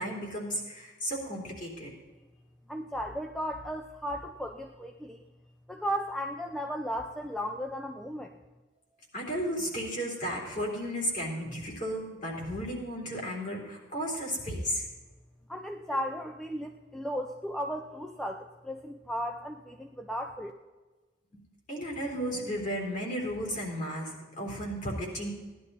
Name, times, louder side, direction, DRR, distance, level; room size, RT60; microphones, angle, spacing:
voice 1, 0.0-1.9 9.1-14.9 15.9-16.0 21.7-25.3, equal, 40° left, -1 dB, 3.6 m, -34 dB
voice 2, 2.7-5.2 5.7-8.3 15.5-20.5, equal, ahead, 3 dB, 0.5 m, -35 dB
17.5 x 11.0 x 4.2 m, 1.2 s
head